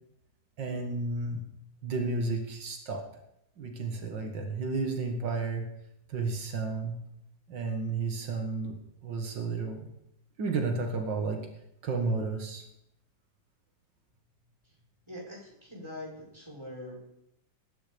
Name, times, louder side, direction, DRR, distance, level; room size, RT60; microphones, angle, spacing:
voice 1, 0.6-1.4 1.8-3.0 3.6-5.7 6.1-7.0 7.5-8.7 9.0-9.9 10.4-11.4 11.8-12.6, right 3 dB, 80° right, 3 dB, 2.4 m, -32 dB
voice 2, 15.1-17.0, left 1 dB, 15° right, -3 dB, 5.0 m, -43 dB
20.5 x 10.0 x 5.2 m, 0.79 s
omnidirectional pair, 1.9 m